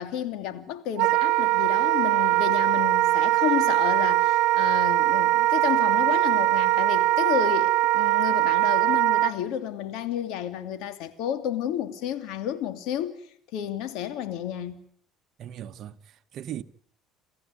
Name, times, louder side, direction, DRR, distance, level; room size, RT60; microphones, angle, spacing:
voice 1, 0.0-13.2 13.5-14.8, left 10 dB, 70° left, 2.8 m, -31 dB
Wind instrument woodwind instrument, 1.0-9.3, right 16 dB, 75° right, 1.2 m, -22 dB
voice 2, 15.4-16.6, right 11 dB, 50° right, 1.2 m, -38 dB
28.5 x 15.0 x 9.6 m
cardioid pair, 120°, 0 cm